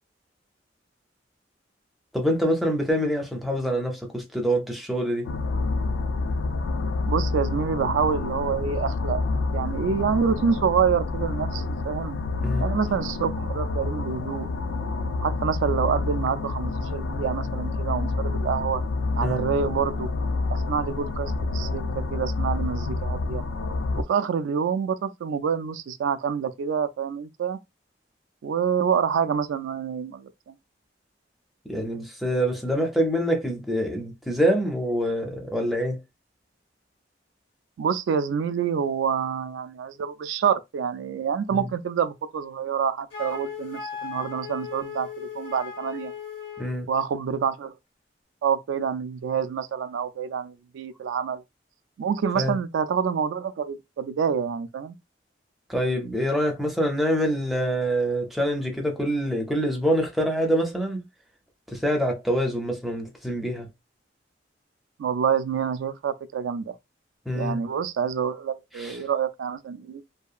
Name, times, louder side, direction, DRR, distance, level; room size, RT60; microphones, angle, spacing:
voice 1, 2.1-5.3 12.4-12.7 19.2-19.4 31.7-36.0 41.5-41.7 46.6-46.9 52.3-52.5 55.7-61.0 61.7-63.7 67.3-67.6 68.7-69.0, equal, ahead, 0.4 m, -25 dB
sound 1, 5.2-24.0, left 3 dB, 85° left, 0.3 m, -28 dB
voice 2, 7.1-9.2 9.5-12.2 12.6-14.5 15.2-18.8 19.2-20.1 20.5-23.4 24.0-27.6 28.4-30.6 37.8-46.1 46.9-47.7 48.4-51.4 52.0-55.0 65.0-66.7 67.3-70.0, right 6 dB, 90° right, 0.3 m, -27 dB
Wind instrument woodwind instrument, 43.1-46.8, left 7 dB, 65° left, 1.3 m, -37 dB
2.8 x 2.2 x 2.4 m
head